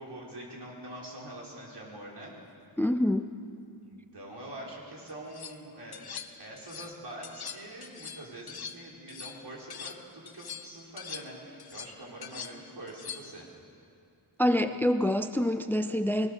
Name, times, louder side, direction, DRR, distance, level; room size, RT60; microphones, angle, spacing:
voice 1, 0.0-2.4 3.8-6.1 6.4-13.5, right 1 dB, 60° right, -3 dB, 5.0 m, -44 dB
voice 2, 2.8-3.3 14.4-16.3, left 1 dB, 5° left, 9 dB, 0.6 m, -26 dB
sound 1, 5.1-5.6 5.9-6.9 7.2-10.0 10.3-13.4, left 7 dB, 55° left, 1.1 m, -43 dB
21.5 x 19.0 x 6.7 m, 2.7 s
wide cardioid pair, 85°, 44 cm